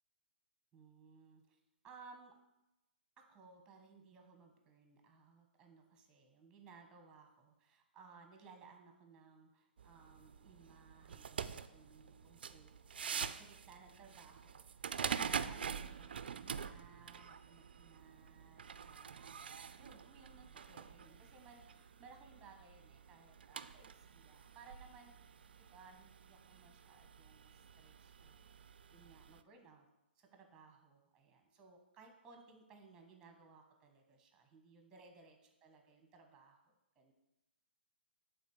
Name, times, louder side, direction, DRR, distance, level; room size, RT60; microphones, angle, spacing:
voice 1, 0.7-1.6 1.8-2.4 3.2-29.8 30.2-37.1, right 4 dB, 15° right, 4 dB, 1.4 m, -61 dB
sound 1, 9.8-29.4, right 7 dB, 65° right, 0.4 m, -46 dB
8.2 x 3.9 x 6.4 m, 0.94 s
figure-of-eight pair, 125°, 6 cm